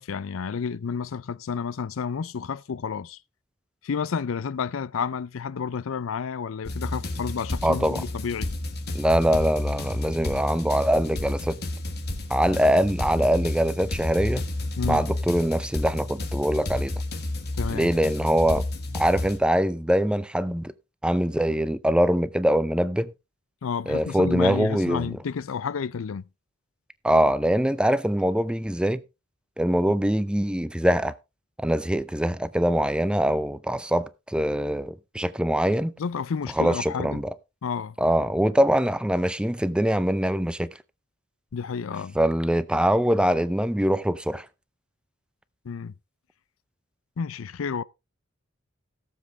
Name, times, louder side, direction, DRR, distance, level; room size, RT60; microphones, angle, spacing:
voice 1, 0.0-3.2 3.8-8.5 14.8-15.1 17.5-17.9 23.6-26.2 36.0-37.2 37.6-38.0 41.5-42.2 45.6-45.9 47.2-47.8, left 6 dB, 80° left, 0.5 m, -30 dB
sound 1, 6.6-19.4, left 1 dB, 50° left, 1.8 m, -31 dB
voice 2, 7.6-8.0 8.9-11.6 12.3-14.4 14.9-16.9 17.7-18.6 18.9-20.7 21.0-23.1 23.9-25.1 27.0-29.0 29.6-31.2 31.6-35.9 36.6-37.3 38.0-40.7 42.2-44.5, equal, 5° right, 0.5 m, -23 dB
17.0 x 7.4 x 3.3 m
head